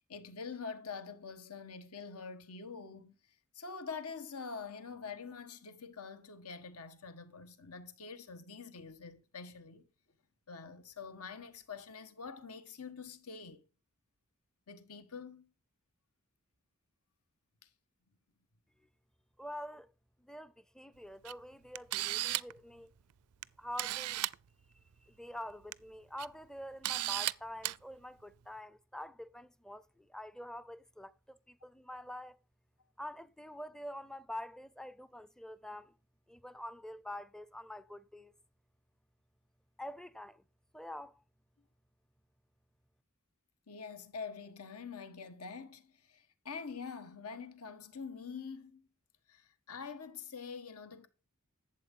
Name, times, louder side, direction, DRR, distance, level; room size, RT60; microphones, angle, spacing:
voice 1, 0.0-3.1 3.5-9.9 10.5-13.6 14.7-15.5 43.7-48.9 49.3-51.1, left 5 dB, 80° left, 1.5 m, -45 dB
voice 2, 19.4-19.9 20.2-22.9 23.6-24.2 25.0-32.4 33.0-35.9 36.3-38.3 39.8-40.4 40.7-41.2, left 1 dB, 5° left, 0.5 m, -46 dB
Camera, 21.3-21.4 21.8-22.6 23.4-23.5 23.8-24.4 25.5-25.7 26.2-26.3 26.8-27.3 27.6-27.8, right 16 dB, 85° right, 0.4 m, -34 dB
12.0 x 7.9 x 5.4 m
head